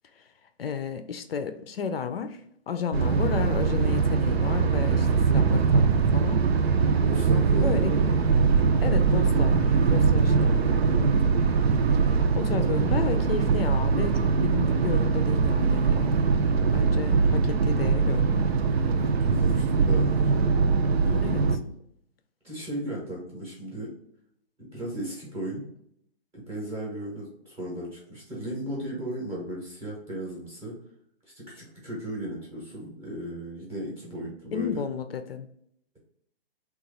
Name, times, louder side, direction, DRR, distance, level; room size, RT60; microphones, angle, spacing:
voice 1, 0.6-6.4 7.6-7.9 8.8-10.7 11.0-11.1 12.4-18.4 21.2-21.5 34.2-35.5, left 6 dB, 70° left, 9 dB, 0.5 m, -33 dB
sound 1, 2.9-21.6, right 5 dB, 75° right, 0.5 m, -22 dB
voice 2, 6.9-8.2 19.0-20.4 21.0-21.7 22.4-23.9 24.6-25.6 26.3-30.7 31.3-34.8, right 1 dB, 10° right, -6 dB, 0.7 m, -36 dB
2.9 x 2.4 x 3.6 m, 0.71 s
hypercardioid pair, 155°, 31 cm